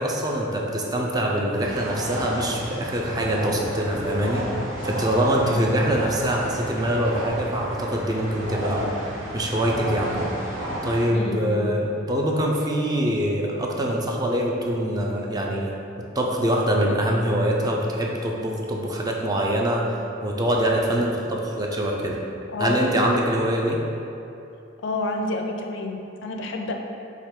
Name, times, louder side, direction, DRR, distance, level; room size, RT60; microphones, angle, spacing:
voice 1, 0.0-4.5 4.8-8.9 9.3-10.2 10.8-15.7 16.1-22.2 22.6-23.8, right 1 dB, 20° right, -1 dB, 0.4 m, -24 dB
sound 1, 1.6-11.1, equal, 75° right, 1.0 m, -32 dB
voice 2, 5.4-5.9 11.1-11.8 22.5-23.0 24.8-26.7, left 2 dB, 65° left, 3 dB, 0.4 m, -29 dB
4.7 x 2.8 x 3.6 m, 2.8 s
head